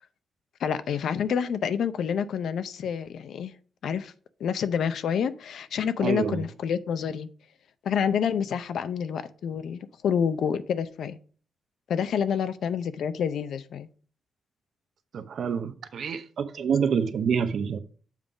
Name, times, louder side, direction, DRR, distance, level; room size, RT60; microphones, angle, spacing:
voice 1, 0.6-3.5 3.8-4.1 4.4-7.3 7.8-11.2 11.9-13.9, left 7 dB, 70° left, 0.5 m, -28 dB
voice 2, 6.0-6.4 15.1-17.8, right 6 dB, 60° right, 0.7 m, -27 dB
7.4 x 3.8 x 4.8 m
wide cardioid pair, 145°, 0 cm